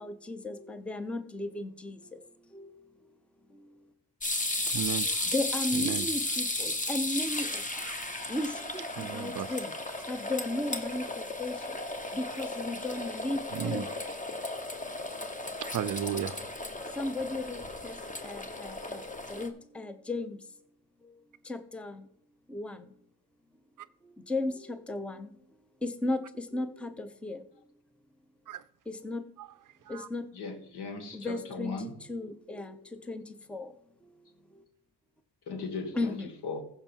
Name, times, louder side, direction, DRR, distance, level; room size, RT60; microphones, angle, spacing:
voice 1, 0.0-2.0 2.5-2.7 5.0-7.8 8.3-9.7 10.1-11.8 12.1-13.9 14.5-14.6 17.0-18.0 18.2-20.4 21.5-22.0 22.5-22.9 24.3-25.3 25.8-27.4 28.9-29.2 29.9-30.2 31.1-33.2 33.5-33.7 35.9-36.3, left 2 dB, 5° left, 0.7 m, -35 dB
sound 1, 4.2-19.5, left 2 dB, 20° left, 1.2 m, -35 dB
voice 2, 4.7-5.1 5.8-6.0 9.0-9.5 13.5-13.8 15.6-16.4 28.5-28.6 29.9-30.1, right 10 dB, 50° right, 0.6 m, -33 dB
voice 3, 30.3-32.0 35.5-36.6, left 4 dB, 65° left, 1.9 m, -38 dB
15.0 x 5.7 x 4.5 m
cardioid pair, 85°, 43 cm